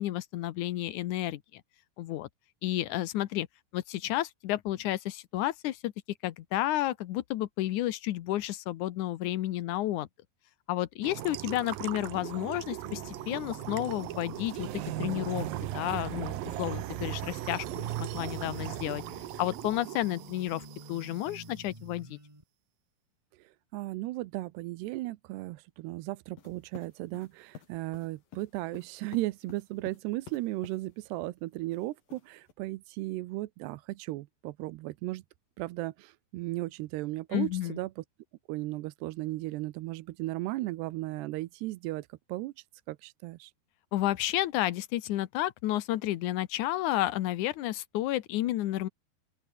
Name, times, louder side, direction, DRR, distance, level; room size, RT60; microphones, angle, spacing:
voice 1, 0.0-1.6 2.0-2.3 2.6-3.5 3.7-5.9 6.2-10.1 10.7-14.7 15.0-19.0 19.4-22.2 37.3-37.8 43.9-48.9, left 14 dB, 75° left, 1.9 m, -31 dB
sound 1, 11.0-21.5, right 14 dB, 70° right, 2.5 m, -38 dB
sound 2, 12.8-22.4, right 1 dB, 10° right, 3.5 m, -49 dB
voice 2, 23.3-35.2 35.6-38.0 38.5-43.5, right 18 dB, 85° right, 2.9 m, -36 dB
sound 3, 26.4-30.8 31.7-32.5, left 8 dB, 60° left, 4.4 m, -51 dB
open air
omnidirectional pair, 4.8 m